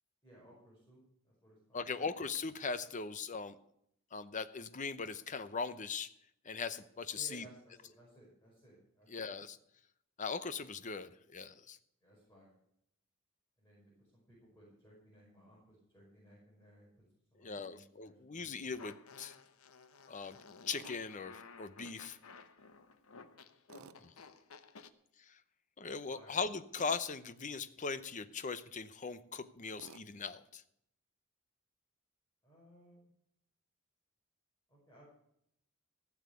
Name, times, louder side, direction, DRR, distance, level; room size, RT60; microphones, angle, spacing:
voice 1, 0.2-2.0 7.1-9.4 12.0-12.6 13.6-17.0 17.3-18.5 23.7-24.1 26.1-26.6 32.4-33.1 34.7-35.0, right 1 dB, 15° left, -7 dB, 5.5 m, -60 dB
voice 2, 1.7-3.6 4.1-6.1 6.4-7.4 9.1-9.6 10.2-11.8 17.4-19.4 20.1-20.4 20.6-22.2 25.3-25.4 25.8-30.6, left 5 dB, 35° left, 13 dB, 0.7 m, -40 dB
Fart, 18.8-24.9, left 5 dB, 90° left, 0.9 m, -55 dB
Tools, 20.7-21.0 23.7-24.0 26.7-27.0 29.8-30.1, right 6 dB, 75° right, 0.6 m, -54 dB
15.5 x 7.3 x 8.2 m, 0.74 s
head